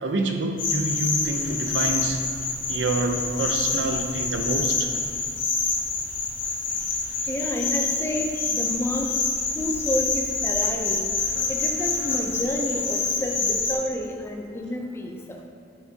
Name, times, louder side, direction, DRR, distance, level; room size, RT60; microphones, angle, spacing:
voice 1, 0.0-2.2 2.7-4.9, right 2 dB, 65° right, 4 dB, 0.6 m, -27 dB
sound 1, 0.6-13.7, left 4 dB, 80° left, 1.1 m, -27 dB
voice 2, 7.3-9.2 9.5-11.1 11.5-15.4, left 1 dB, 15° left, 2 dB, 0.5 m, -30 dB
9.9 x 5.8 x 2.8 m, 2.3 s
head